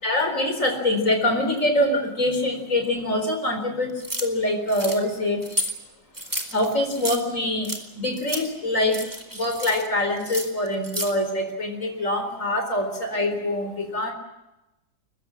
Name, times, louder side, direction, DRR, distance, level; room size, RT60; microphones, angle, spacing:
voice 1, 0.0-5.7 6.5-14.1, left 1 dB, 45° left, 5 dB, 4.6 m, -25 dB
sound 1, 4.0-4.3 4.7-5.0 5.4-5.7 6.1-7.2 7.6-7.8 8.2-8.4 8.8-9.9 10.2-11.1, equal, 10° right, 2.6 m, -31 dB
23.5 x 21.5 x 7.6 m, 0.97 s
omnidirectional pair, 1.8 m